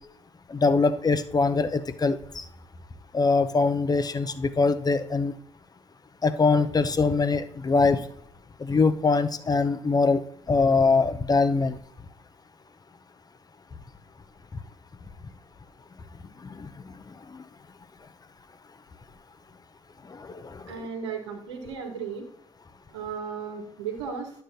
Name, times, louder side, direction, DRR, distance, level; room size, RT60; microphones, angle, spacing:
voice 1, 0.5-2.4 3.1-5.3 6.2-8.0 8.6-10.2 10.5-11.8 16.6-16.7 20.2-20.9, left 4 dB, 25° left, 12 dB, 0.7 m, -23 dB
voice 2, 20.7-22.3 22.9-24.3, right 6 dB, 85° right, 3 dB, 1.3 m, -35 dB
11.0 x 6.7 x 2.7 m, 0.68 s
hypercardioid pair, 45°, 15 cm